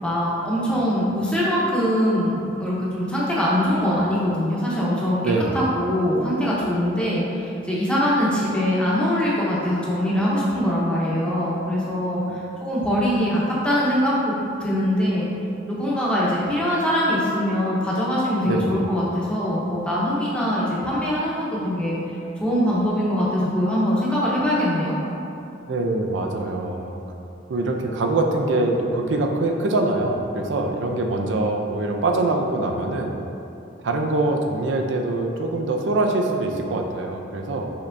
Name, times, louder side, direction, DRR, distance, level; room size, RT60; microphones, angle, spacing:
voice 1, 0.0-5.2 5.5-14.3 14.6-15.3 15.6-22.0 22.4-25.0, equal, 5° left, -7 dB, 0.8 m, -22 dB
voice 2, 25.7-27.0 27.5-33.2 33.8-37.7, right 2 dB, 75° right, 2 dB, 0.4 m, -23 dB
5.6 x 3.2 x 2.6 m, 2.8 s
head